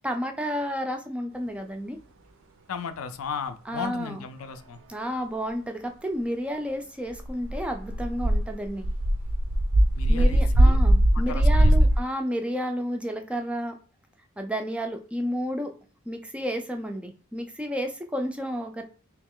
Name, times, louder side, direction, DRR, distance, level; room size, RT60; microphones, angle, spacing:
voice 1, 0.0-2.0 3.7-4.2 4.9-8.9 10.1-13.7 14.4-15.7 16.1-18.8, equal, 5° right, 5 dB, 0.3 m, -31 dB
voice 2, 2.7-4.8 10.0-10.8 11.1-11.7, left 6 dB, 70° left, 9 dB, 0.4 m, -35 dB
sound 1, 7.1-12.0, right 1 dB, 60° right, 0.5 m, -20 dB
3.1 x 2.9 x 3.6 m, 0.38 s
head